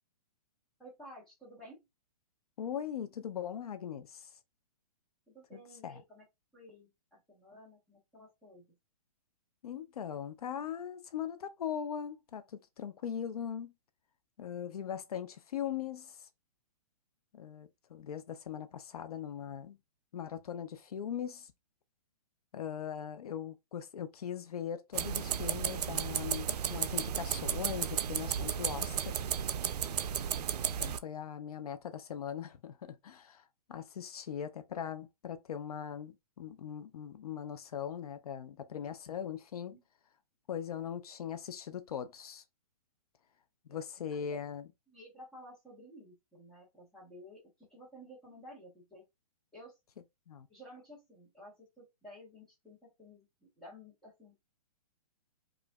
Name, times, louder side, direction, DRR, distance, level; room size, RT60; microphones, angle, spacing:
voice 1, 0.8-1.9 5.3-6.2 6.5-8.7 29.9-30.3 39.7-39.8 44.3-44.4 44.9-49.0 49.5-49.8 50.5-54.3, equal, ahead, 1.1 m, -54 dB
voice 2, 2.6-4.3 5.5-6.0 9.6-13.7 14.4-16.3 17.3-19.8 20.1-21.5 22.5-29.1 30.8-39.7 40.5-42.4 43.7-44.7 50.3-50.5, left 8 dB, 70° left, 0.6 m, -40 dB
sound 1, 24.9-31.0, right 8 dB, 85° right, 0.4 m, -34 dB
4.8 x 2.5 x 2.3 m
hypercardioid pair, 175°, 20 cm